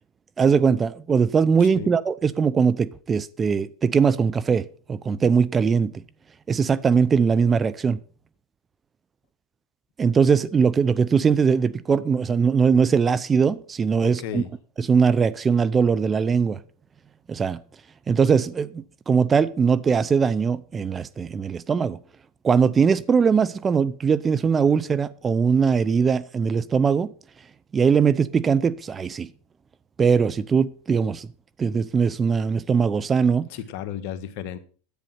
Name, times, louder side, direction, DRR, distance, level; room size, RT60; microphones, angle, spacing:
voice 1, 0.4-5.9 6.5-8.0 10.0-14.4 14.8-16.6 17.3-17.6 18.1-22.0 22.4-27.1 27.7-29.3 30.0-31.3 31.6-33.5, right 6 dB, 25° right, 0.7 m, -21 dB
voice 2, 1.6-1.9 14.0-14.5 33.5-34.6, left 9 dB, 60° left, 1.5 m, -34 dB
10.5 x 9.0 x 5.8 m
hypercardioid pair, 100°, 0 cm